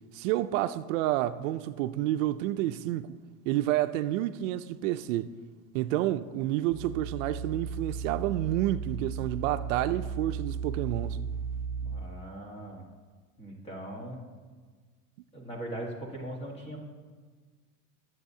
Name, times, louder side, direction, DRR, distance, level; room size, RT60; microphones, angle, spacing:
voice 1, 0.1-3.2 3.4-5.3 5.7-11.2, right 14 dB, 75° right, 0.5 m, -29 dB
sound 1, 6.7-12.0, right 6 dB, 30° right, 0.7 m, -35 dB
voice 2, 11.8-12.9 13.4-14.2 15.3-16.8, right 1 dB, 15° left, 1.4 m, -40 dB
21.5 x 7.8 x 2.7 m
cardioid pair, 180°, 39 cm